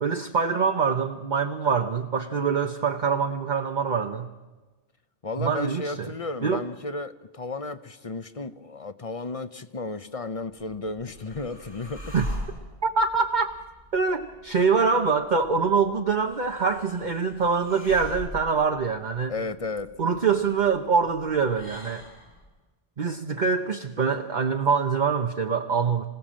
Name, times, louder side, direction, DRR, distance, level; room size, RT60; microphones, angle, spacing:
voice 1, 0.0-4.3 5.4-6.1 6.4-6.6 12.1-12.2 12.8-13.5 13.9-19.3 20.0-22.0 23.0-26.1, right 5 dB, 45° right, 5 dB, 0.9 m, -24 dB
voice 2, 5.2-12.1 19.3-19.9, left 3 dB, 35° left, 12 dB, 0.7 m, -33 dB
sound 1, 10.5-22.5, equal, 75° left, 5.6 m, -42 dB
26.0 x 17.0 x 7.5 m, 1.2 s
omnidirectional pair, 1.2 m